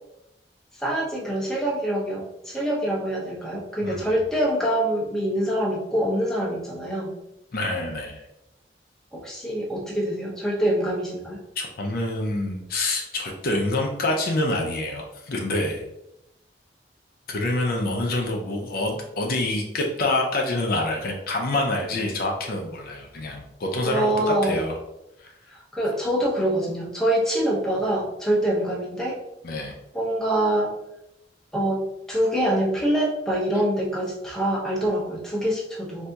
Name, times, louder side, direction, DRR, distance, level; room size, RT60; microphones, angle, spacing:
voice 1, 0.7-7.1 9.1-11.4 23.9-24.5 25.5-29.2 29.9-30.7 31.5-36.1, right 1 dB, 5° left, -4 dB, 0.7 m, -25 dB
voice 2, 7.5-8.2 11.6-15.8 17.3-24.8 25.2-25.6 29.4-29.7, left 2 dB, 55° left, 1 dB, 0.5 m, -26 dB
4.0 x 2.7 x 2.2 m, 0.88 s
head